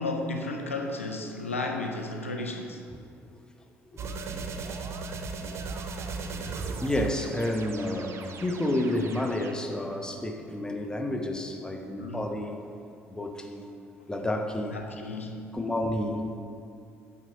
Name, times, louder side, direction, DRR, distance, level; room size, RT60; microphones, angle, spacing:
voice 1, 0.0-2.8 12.0-12.2 14.7-15.5, left 2 dB, 85° left, 3 dB, 0.5 m, -33 dB
sound 1, 4.0-9.5, right 4 dB, 40° right, 0.6 m, -37 dB
voice 2, 6.5-12.6 13.1-13.7 14.1-14.8 15.5-16.4, left 1 dB, 10° left, 4 dB, 0.9 m, -30 dB
8.9 x 3.7 x 6.0 m, 2.5 s
figure-of-eight pair, 50°, 7 cm